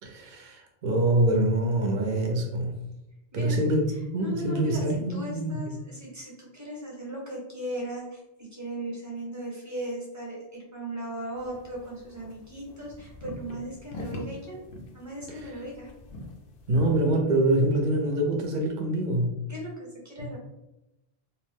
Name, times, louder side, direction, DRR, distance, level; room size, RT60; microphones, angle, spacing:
voice 1, 0.0-2.8 3.3-5.7 15.4-15.5 16.7-19.4, right 1 dB, 55° right, 1 dB, 0.7 m, -25 dB
voice 2, 3.3-3.7 4.2-14.6 14.9-15.9 19.5-20.4, right 1 dB, 20° right, -4 dB, 0.8 m, -37 dB
sound 1, 11.4-17.2, left 1 dB, 65° left, 0.7 m, -43 dB
2.6 x 2.1 x 3.2 m, 0.92 s
omnidirectional pair, 1.1 m